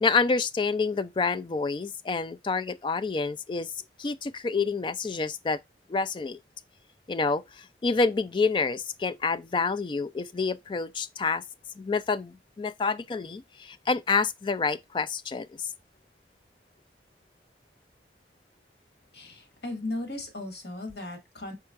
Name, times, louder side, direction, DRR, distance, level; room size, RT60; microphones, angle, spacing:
voice 1, 0.0-3.7 4.0-5.6 5.9-6.4 7.1-11.4 11.8-15.7, left 4 dB, 30° left, 0.3 m, -28 dB
voice 2, 19.1-21.5, left 2 dB, 75° left, 1.8 m, -36 dB
4.6 x 4.5 x 2.4 m
head